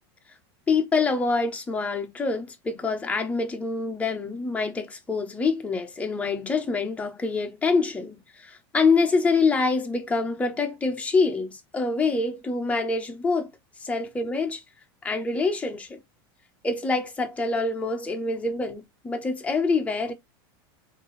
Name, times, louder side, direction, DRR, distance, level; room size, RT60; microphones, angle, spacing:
voice 1, 0.7-13.5 13.8-14.6 15.0-16.0 16.6-20.1, left 4 dB, 10° left, 0.9 m, -26 dB
3.6 x 2.8 x 4.0 m
supercardioid pair, 140°, 13 cm